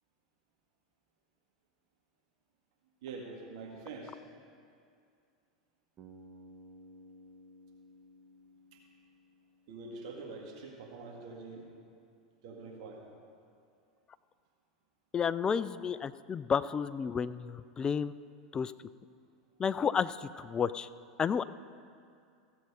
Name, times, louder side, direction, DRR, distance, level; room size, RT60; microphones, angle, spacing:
voice 1, 3.0-4.2 8.7-8.8 9.7-11.6 12.4-13.0, right 3 dB, 60° right, -1 dB, 2.0 m, -45 dB
Bass guitar, 6.0-10.1, equal, 30° right, 1.3 m, -56 dB
voice 2, 15.1-18.1 18.5-18.7 19.6-20.9 21.2-21.4, left 6 dB, 25° left, 16 dB, 0.3 m, -31 dB
15.5 x 7.6 x 5.0 m, 2.4 s
hypercardioid pair, 90°, 4 cm